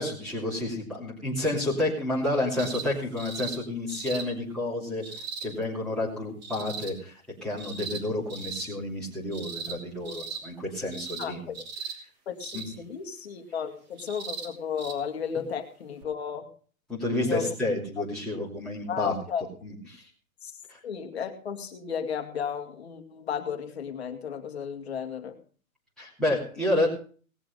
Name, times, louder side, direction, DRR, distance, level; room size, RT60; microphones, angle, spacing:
voice 1, 0.0-5.0 5.4-7.1 7.4-11.5 12.5-12.6 16.9-19.1 19.6-20.1 20.7-20.8 26.0-26.9, left 1 dB, ahead, -8 dB, 2.9 m, -30 dB
sound 1, 2.6-2.9 3.2-3.6 3.9-4.3 5.0-5.5 6.4-6.9 7.6-8.0 8.3-8.7 9.3-9.8 10.0-10.4 10.9-11.3 11.5-12.0 12.4-12.7 14.0-14.5 14.8-14.9 16.0-16.1, right 5 dB, 30° right, 3.0 m, -37 dB
voice 2, 11.2-11.6 12.3-16.5 17.2-17.5 18.9-19.4 20.4-20.5 20.8-25.4, left 7 dB, 45° left, 5 dB, 2.2 m, -34 dB
19.0 x 7.5 x 5.3 m, 0.42 s
hypercardioid pair, 180°, 42 cm